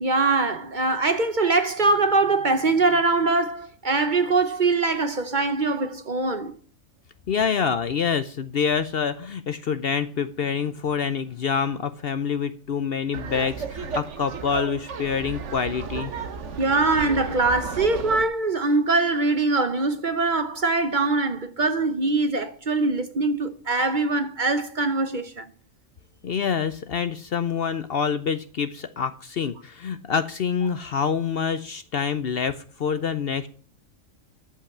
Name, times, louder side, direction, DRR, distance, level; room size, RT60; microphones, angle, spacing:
voice 1, 0.0-6.5 16.6-25.5, right 3 dB, 40° right, 0.9 m, -23 dB
voice 2, 7.3-16.1 26.2-33.5, left 6 dB, 55° left, 0.8 m, -26 dB
Laughter, 13.1-18.2, right 5 dB, 65° right, 1.3 m, -34 dB
13.5 x 5.7 x 7.2 m
omnidirectional pair, 1.4 m